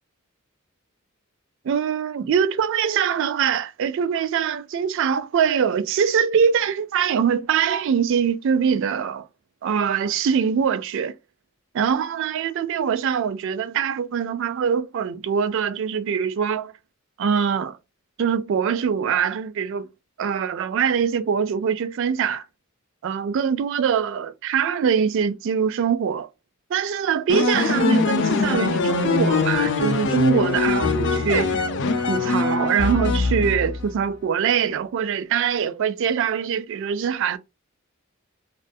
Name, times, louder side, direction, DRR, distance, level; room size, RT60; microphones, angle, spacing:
voice 1, 1.6-9.3 9.6-11.1 11.7-16.7 17.2-17.8 18.2-19.9 20.2-22.4 23.0-26.3 26.7-31.6 32.1-37.4, right 7 dB, 60° right, 0.3 m, -23 dB
sound 1, 27.3-33.9, left 4 dB, 60° left, 0.4 m, -22 dB
2.5 x 2.4 x 2.2 m
head